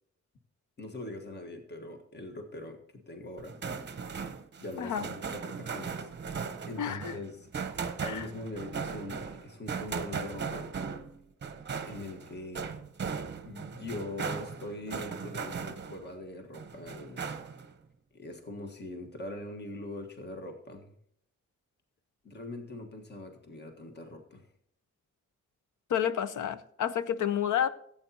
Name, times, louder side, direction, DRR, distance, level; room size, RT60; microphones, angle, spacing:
voice 1, 0.8-3.6 4.6-6.1 6.6-7.5 7.7-10.7 11.8-12.7 13.4-17.3 18.1-20.9 22.2-24.5, left 2 dB, 35° left, 1.5 m, -42 dB
sound 1, 3.4-16.1 16.5-17.7, right 5 dB, 35° right, 0.8 m, -38 dB
voice 2, 4.8-5.1 6.8-7.1 8.0-8.3 25.9-27.7, left 9 dB, 80° left, 0.8 m, -30 dB
15.5 x 8.8 x 2.9 m
wide cardioid pair, 140°, 30 cm